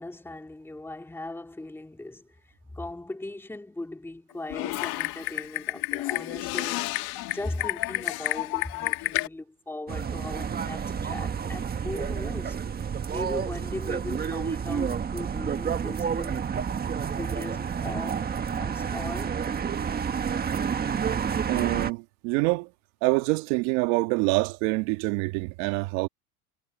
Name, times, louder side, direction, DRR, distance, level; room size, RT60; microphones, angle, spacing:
voice 1, 0.0-7.0 7.3-12.6 13.1-16.4 17.1-19.4, left 2 dB, 5° left, 2.7 m, -39 dB
Typing, 4.5-9.3, left 20 dB, 50° left, 1.8 m, -30 dB
sound 1, 9.9-21.9, right 7 dB, 20° right, 1.5 m, -30 dB
voice 2, 21.5-22.7 23.0-26.1, right 25 dB, 65° right, 1.9 m, -26 dB
supercardioid pair, 120°, 45 cm